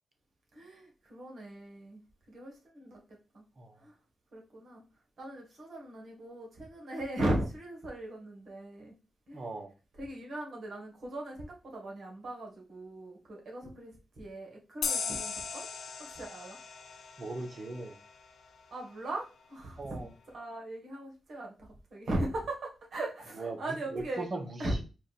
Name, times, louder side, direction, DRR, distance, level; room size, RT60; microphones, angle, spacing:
voice 1, 0.5-3.0 3.3-3.4 3.8-4.0 4.3-4.8 5.2-8.9 9.3-9.5 10.0-15.7 16.0-16.6 18.7-24.3 24.6-24.8, right 1 dB, 70° right, -1 dB, 1.9 m, -38 dB
voice 2, 9.3-9.7 17.2-18.0 19.8-20.1 23.4-24.8, right 2 dB, 50° right, 6 dB, 1.1 m, -39 dB
sound 1, 14.8-18.2, left 5 dB, 85° left, 0.6 m, -37 dB
4.5 x 2.6 x 4.3 m, 0.31 s
cardioid pair, 55°, 0 cm